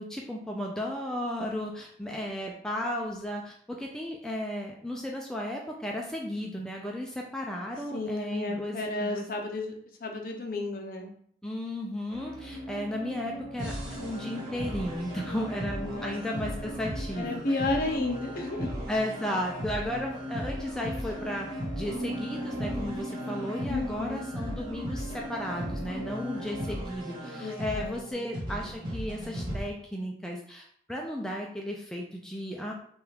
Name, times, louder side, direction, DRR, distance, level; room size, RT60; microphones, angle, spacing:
voice 1, 0.0-9.2 11.4-13.7 14.0-17.7 18.9-32.7, left 1 dB, 5° left, -1 dB, 0.3 m, -34 dB
voice 2, 7.9-9.7 10.0-11.1 15.8-16.1 17.2-18.8 23.7-24.2 27.4-28.2, left 2 dB, 50° left, 1 dB, 0.6 m, -32 dB
sound 1, 12.1-26.7, equal, 45° right, 0.8 m, -42 dB
sound 2, 13.6-29.6, equal, 25° right, 1.1 m, -38 dB
sound 3, 21.9-28.1, equal, 30° left, 1.6 m, -42 dB
3.4 x 2.3 x 4.4 m, 0.64 s
head